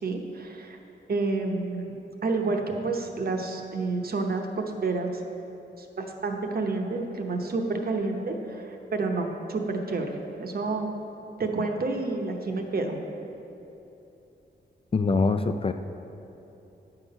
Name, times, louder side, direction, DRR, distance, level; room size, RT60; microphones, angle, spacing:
voice 1, 0.0-0.8 1.1-5.1 5.8-11.0 11.4-13.0, right 3 dB, 55° right, 3 dB, 0.9 m, -29 dB
voice 2, 14.9-15.7, left 4 dB, 30° left, 8 dB, 0.4 m, -23 dB
9.7 x 5.9 x 5.5 m, 2.9 s
wide cardioid pair, 105°, 19 cm